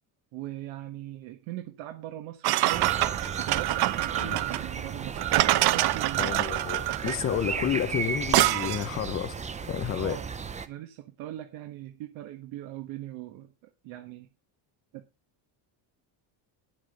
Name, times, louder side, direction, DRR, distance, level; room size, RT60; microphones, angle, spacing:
voice 1, 0.3-3.0 3.4-6.4 7.3-7.7 9.9-10.3 10.6-14.3 14.9-15.0, right 14 dB, 80° right, 1.6 m, -40 dB
sound 1, 2.4-9.0, right 16 dB, 55° right, 0.6 m, -26 dB
sound 2, 2.7-10.7, right 5 dB, 15° right, 0.6 m, -36 dB
voice 2, 6.2-10.2, left 10 dB, 30° left, 0.7 m, -31 dB
9.9 x 7.6 x 5.2 m
cardioid pair, 155°, 47 cm